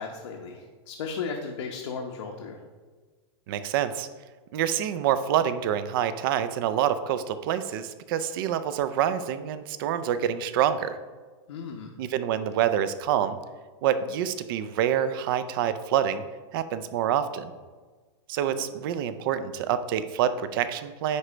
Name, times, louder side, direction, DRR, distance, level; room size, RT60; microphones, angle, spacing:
voice 1, 0.0-2.6 11.5-11.9 18.5-18.7, left 5 dB, 85° left, 1 dB, 0.9 m, -35 dB
voice 2, 3.5-4.1 4.5-11.0 12.0-13.4 13.8-16.2 16.5-17.5 18.3-21.2, right 9 dB, 45° right, 12 dB, 0.5 m, -27 dB
9.6 x 3.3 x 5.0 m, 1.4 s
supercardioid pair, 160°, 15 cm